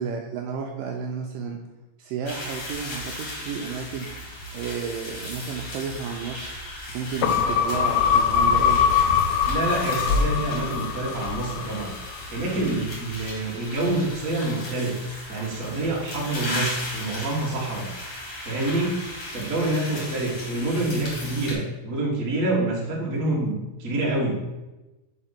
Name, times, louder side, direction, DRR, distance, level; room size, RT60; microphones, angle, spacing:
voice 1, 0.0-1.6 2.0-4.1 4.5-6.5 6.9-8.8, right 6 dB, 80° right, 2 dB, 2.0 m, -32 dB
sound 1, 2.2-21.5, left 1 dB, 40° left, 2.4 m, -37 dB
sound 2, 2.7-13.4, right 1 dB, 55° left, 2.1 m, -46 dB
sound 3, 7.2-11.9 12.3-12.4, left 7 dB, 85° left, 2.5 m, -22 dB
voice 2, 9.5-11.9 12.3-15.0 15.3-17.9 18.4-18.9 19.3-24.4, right 2 dB, 55° right, -4 dB, 0.8 m, -27 dB
5.1 x 5.1 x 5.7 m, 1.1 s
omnidirectional pair, 4.4 m